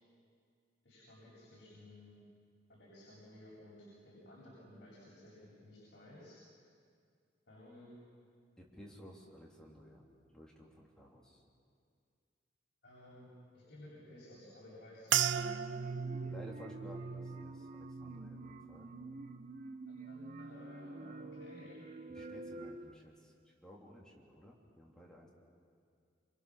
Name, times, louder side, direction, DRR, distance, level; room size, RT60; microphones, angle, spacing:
voice 1, 0.8-2.2 2.7-6.4 7.5-8.0 12.8-13.3 13.5-15.4 20.1-21.8, left 1 dB, 60° left, -7 dB, 7.9 m, -55 dB
voice 2, 8.6-10.1 10.3-11.4 16.2-18.9 22.1-25.3, equal, 5° left, -4 dB, 3.4 m, -55 dB
sound 1, 15.1-19.6 20.0-20.6 21.2-21.5, right 9 dB, 75° right, 0.6 m, -38 dB
sound 2, 15.4-22.9, right 2 dB, 45° right, 1.0 m, -48 dB
28.0 x 27.0 x 6.6 m, 2.2 s
head